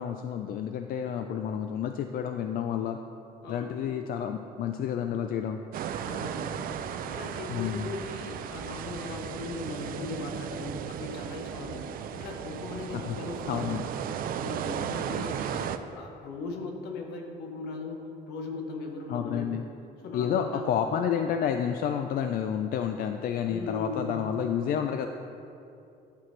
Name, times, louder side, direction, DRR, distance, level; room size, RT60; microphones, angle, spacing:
voice 1, 0.0-3.0 3.5-5.6 7.5-7.9 13.0-13.1 13.5-13.8 19.1-19.6 20.1-25.1, left 8 dB, 60° left, 6 dB, 0.4 m, -30 dB
voice 2, 3.4-3.8 6.0-6.8 7.0-13.8 14.4-19.6 20.0-20.7 23.5-24.3, left 3 dB, 80° left, 2 dB, 1.1 m, -38 dB
sound 1, 5.7-15.8, right 8 dB, 60° right, 0.4 m, -35 dB
11.0 x 5.9 x 3.2 m, 2.7 s
cardioid pair, 110°, 17 cm